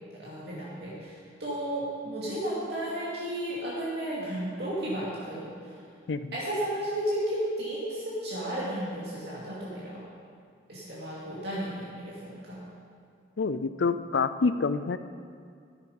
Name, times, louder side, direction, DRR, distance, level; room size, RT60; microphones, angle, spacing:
voice 1, 0.2-5.5 6.3-10.0 10.7-12.6, right 1 dB, 60° right, -8 dB, 2.5 m, -33 dB
voice 2, 13.4-15.0, left 4 dB, 80° left, 13 dB, 0.5 m, -27 dB
13.0 x 9.7 x 5.4 m, 2.3 s
head